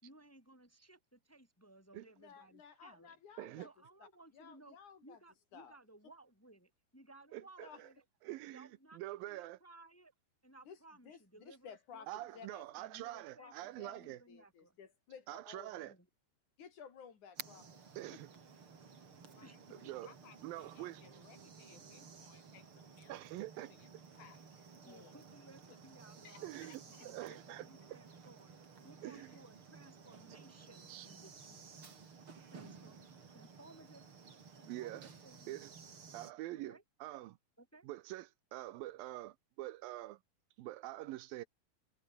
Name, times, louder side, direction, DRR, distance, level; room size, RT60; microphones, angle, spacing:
voice 1, 0.0-3.2 3.6-8.0 8.5-10.1 10.4-12.4 12.8-14.8 15.8-16.1 19.4-19.6 20.0-20.1 24.8-26.5 27.0-31.8 32.5-34.0 34.5-35.5 36.5-36.8 37.6-37.9, right 2 dB, 5° left, 2.7 m, -60 dB
voice 2, 2.2-3.7 4.3-5.2 5.5-5.8 7.6-7.8 10.6-10.8 11.0-11.2 11.5-12.6 13.4-15.9 16.6-17.8 18.1-18.2, left 7 dB, 55° left, 4.7 m, -55 dB
voice 3, 7.3-7.9 8.2-9.6 12.1-14.2 15.3-15.9 18.0-18.3 19.8-20.1 20.4-21.0 23.1-23.7 26.4-27.7 29.0-29.3 30.9-31.1 34.7-35.1 35.5-35.7 36.1-37.4 37.8-40.2 40.6-41.4, right 16 dB, 80° right, 2.6 m, -45 dB
sound 1, 17.4-36.3, right 5 dB, 40° right, 3.6 m, -55 dB
voice 4, 19.3-25.2 25.7-25.8 26.2-27.4 29.0-29.4, left 8 dB, 85° left, 4.6 m, -63 dB
omnidirectional pair, 4.1 m